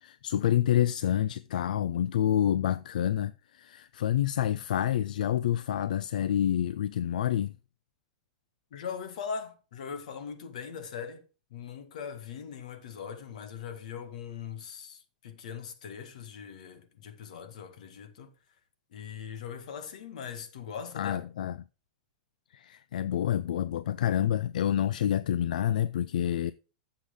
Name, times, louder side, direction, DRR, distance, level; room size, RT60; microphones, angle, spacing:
voice 1, 0.0-7.5 21.0-21.5 22.5-26.5, left 11 dB, 85° left, 0.5 m, -28 dB
voice 2, 8.7-18.3 18.9-21.2, left 7 dB, 65° left, 1.8 m, -40 dB
9.9 x 7.6 x 3.6 m
supercardioid pair, 175°, 4 cm